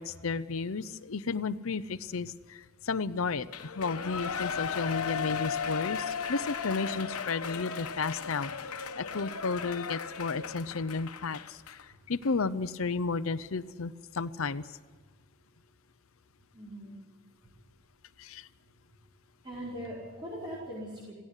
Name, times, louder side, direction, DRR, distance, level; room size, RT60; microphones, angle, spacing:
voice 1, 0.0-11.6 12.1-14.8 18.2-18.5, left 4 dB, 65° left, 12 dB, 0.7 m, -33 dB
Shout / Cheering, 3.5-11.8 12.2-12.3, left 6 dB, 80° left, 1.1 m, -36 dB
voice 2, 16.5-17.0 19.4-21.1, equal, 20° right, -8 dB, 4.8 m, -40 dB
16.5 x 16.5 x 9.8 m, 1.4 s
head